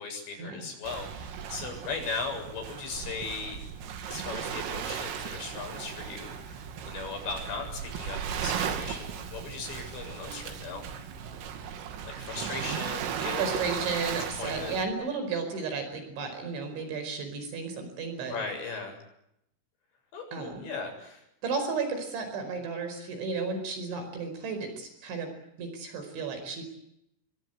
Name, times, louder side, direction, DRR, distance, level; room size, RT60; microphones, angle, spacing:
voice 1, 0.0-3.6 4.1-10.8 12.1-13.6 14.4-14.8 18.2-19.0 20.1-21.2, left 4 dB, 60° left, 4 dB, 9.6 m, -38 dB
Waves surf, 0.8-14.9, right 8 dB, 85° right, 5.1 m, -36 dB
voice 2, 13.4-18.4 20.3-20.7 21.4-25.3 25.6-26.6, right 4 dB, 65° right, 7 dB, 7.2 m, -33 dB
29.0 x 23.0 x 8.1 m, 0.80 s
omnidirectional pair, 5.7 m